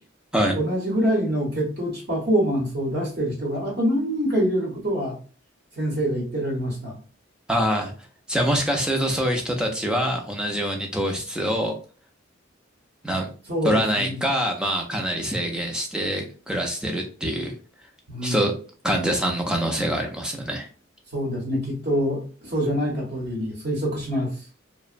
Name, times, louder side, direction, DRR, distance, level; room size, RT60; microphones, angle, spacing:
voice 1, 0.5-5.1 5.8-7.0 13.5-14.2 18.1-18.5 21.1-24.5, equal, 50° right, -2 dB, 1.0 m, -25 dB
voice 2, 7.5-7.9 8.3-11.7 13.0-13.3 13.6-17.5 18.2-18.6 18.8-20.7, equal, 5° right, 3 dB, 0.4 m, -25 dB
2.8 x 2.1 x 2.4 m, 0.39 s
head